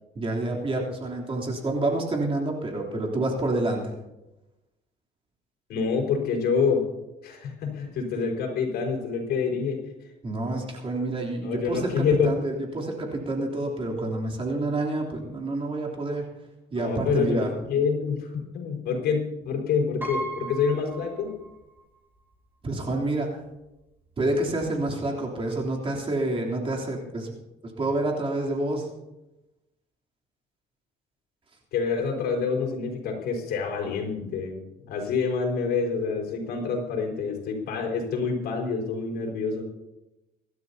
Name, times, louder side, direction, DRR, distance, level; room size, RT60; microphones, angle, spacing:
voice 1, 0.1-3.9 10.2-16.3 16.7-17.5 22.6-23.4 24.2-28.9, right 2 dB, 30° right, -1 dB, 3.3 m, -28 dB
voice 2, 5.7-6.8 7.2-9.8 11.4-12.4 16.7-21.3 31.7-34.6 34.9-39.6, left 5 dB, 70° left, 1 dB, 4.9 m, -27 dB
Piano, 20.0-21.8 22.1-22.2 23.4-23.5 23.8-24.0, right 2 dB, 10° right, 3.7 m, -36 dB
25.0 x 12.5 x 2.8 m, 0.98 s
cardioid pair, 110°, 17 cm